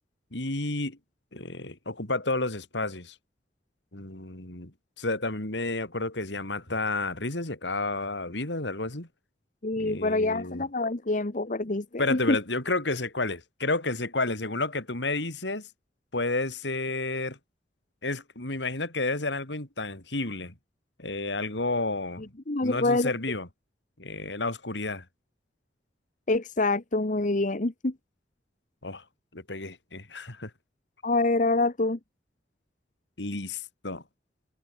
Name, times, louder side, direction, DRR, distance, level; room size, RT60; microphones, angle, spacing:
voice 1, 0.3-1.0 1.3-3.2 3.9-9.1 9.8-10.7 12.0-15.7 16.1-17.4 18.0-20.5 21.0-22.2 22.6-23.5 24.0-25.0 28.8-29.0 29.3-30.5 33.2-34.0, left 2 dB, 80° left, 3.9 m, -31 dB
voice 2, 9.6-11.8 12.1-12.4 22.5-23.1 26.3-27.9 31.0-32.0, left 2 dB, 45° left, 1.2 m, -26 dB
head